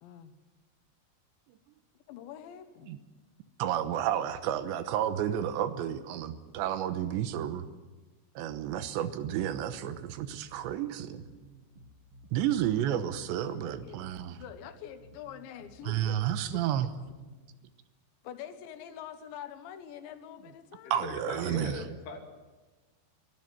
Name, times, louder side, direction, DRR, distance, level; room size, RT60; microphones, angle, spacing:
voice 1, 0.0-0.3 2.1-2.9 9.3-9.4 13.4-14.1 14.4-16.9 18.2-21.2, left 9 dB, 85° left, 9 dB, 3.6 m, -46 dB
voice 2, 3.6-7.7 8.4-11.2 12.3-14.4 15.9-16.9 20.9-21.8, right 10 dB, 85° right, 11 dB, 3.3 m, -31 dB
sound 1, 10.2-17.4, right 2 dB, 40° right, 2.5 m, -55 dB
voice 3, 21.0-22.2, left 4 dB, 70° left, 3 dB, 4.5 m, -40 dB
23.5 x 13.0 x 9.4 m, 1.3 s
omnidirectional pair, 5.1 m